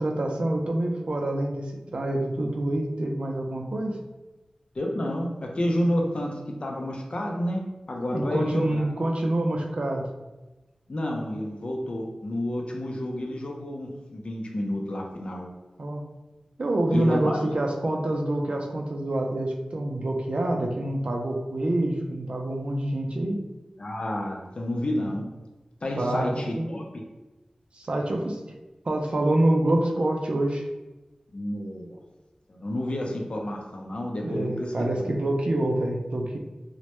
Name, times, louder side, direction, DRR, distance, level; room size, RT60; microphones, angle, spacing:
voice 1, 0.0-4.0 8.1-10.0 15.8-16.0 16.6-23.4 26.0-26.7 27.7-28.4 28.8-30.6 34.2-36.4, right 1 dB, 60° right, 1 dB, 0.4 m, -26 dB
voice 2, 4.7-7.6 7.9-8.8 10.9-15.5 16.9-17.5 23.8-25.3 25.8-27.0 31.3-32.0 32.5-35.2, left 1 dB, 55° left, 0 dB, 0.4 m, -30 dB
2.1 x 2.0 x 2.9 m, 1.1 s
wide cardioid pair, 55°, 2 cm